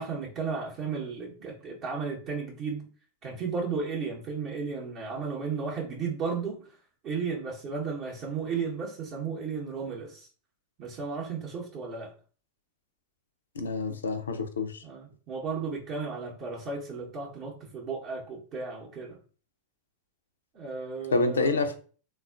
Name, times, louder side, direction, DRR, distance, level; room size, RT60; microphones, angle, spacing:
voice 1, 0.0-2.9 3.2-6.7 7.0-10.3 10.8-12.1 14.8-19.2 20.5-21.6, right 5 dB, 35° right, 0.7 m, -34 dB
voice 2, 13.6-14.8 21.1-21.8, left 3 dB, 70° left, 0.4 m, -27 dB
3.5 x 2.3 x 2.3 m
figure-of-eight pair, 90°, 0 cm